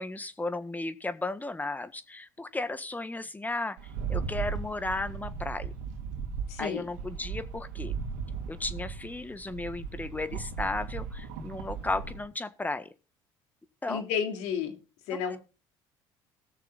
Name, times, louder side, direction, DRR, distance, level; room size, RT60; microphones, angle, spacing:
voice 1, 0.0-5.7 6.6-7.9 8.5-12.9 13.8-14.0 15.1-15.4, left 2 dB, 15° left, 12 dB, 1.6 m, -35 dB
Rattle, 3.8-12.2, right 6 dB, 85° right, 2.8 m, -37 dB
voice 2, 6.5-6.8 13.9-14.7 15.1-15.4, left 7 dB, 80° left, 5 dB, 3.1 m, -31 dB
19.0 x 6.6 x 4.2 m, 0.33 s
supercardioid pair, 80°, 11 cm